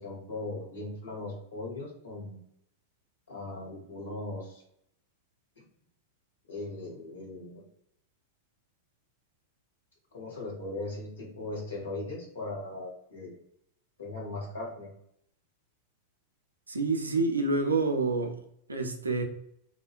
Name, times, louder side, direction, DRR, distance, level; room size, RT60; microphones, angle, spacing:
voice 1, 0.0-2.4 3.3-4.6 5.6-5.7 6.5-7.5 10.1-13.4 14.0-14.9, left 2 dB, 70° left, 0.9 m, -38 dB
voice 2, 16.7-18.4 18.7-19.2, right 3 dB, 80° right, 0.3 m, -27 dB
2.4 x 2.1 x 2.4 m
figure-of-eight pair, 90°, 0 cm